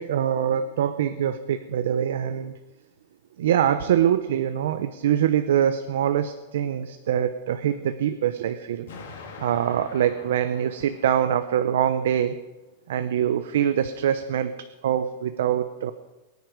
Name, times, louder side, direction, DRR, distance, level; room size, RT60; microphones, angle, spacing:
voice 1, 0.0-2.5 3.4-8.9 9.4-12.4 12.9-14.5 14.8-15.9, right 9 dB, 70° right, 9 dB, 0.8 m, -24 dB
Explosion, 8.9-11.9, left 4 dB, 85° left, 3.7 m, -43 dB
22.5 x 9.5 x 5.2 m, 1.1 s
supercardioid pair, 180°, 0 cm